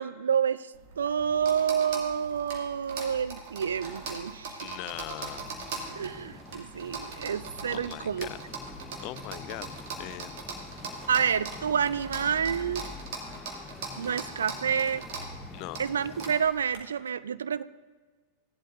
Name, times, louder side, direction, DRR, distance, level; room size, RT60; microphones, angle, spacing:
voice 1, 0.0-4.8 5.9-8.3 11.1-12.9 14.0-15.0 15.8-17.6, right 7 dB, 70° right, 15 dB, 0.3 m, -29 dB
sound 1, 0.7-16.8, right 3 dB, 50° right, 2.0 m, -41 dB
voice 2, 4.6-5.5 7.7-8.3 9.0-9.7 10.0-10.4 13.2-13.5 15.5-15.8, left 17 dB, 45° left, 18 dB, 0.3 m, -40 dB
sound 2, 5.3-16.4, left 4 dB, 15° left, 0.8 m, -47 dB
17.0 x 11.0 x 2.6 m, 1.4 s
figure-of-eight pair, 90°, 0 cm